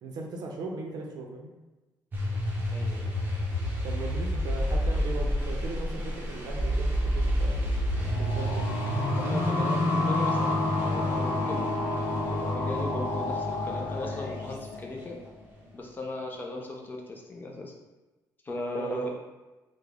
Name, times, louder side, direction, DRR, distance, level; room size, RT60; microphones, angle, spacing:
voice 1, 0.0-1.5 3.8-7.6 8.1-8.7 18.8-19.0, right 3 dB, 65° right, 1 dB, 0.5 m, -38 dB
sound 1, 2.1-14.5, left 1 dB, 25° right, 0.7 m, -30 dB
voice 2, 2.7-3.4 8.4-8.5 9.1-15.2 15.7-17.7 18.4-19.1, left 1 dB, 25° left, 0 dB, 0.4 m, -38 dB
sound 2, 8.0-15.4, left 2 dB, 65° left, 0.6 m, -30 dB
3.5 x 2.0 x 3.3 m, 1.1 s
cardioid pair, 145°, 8 cm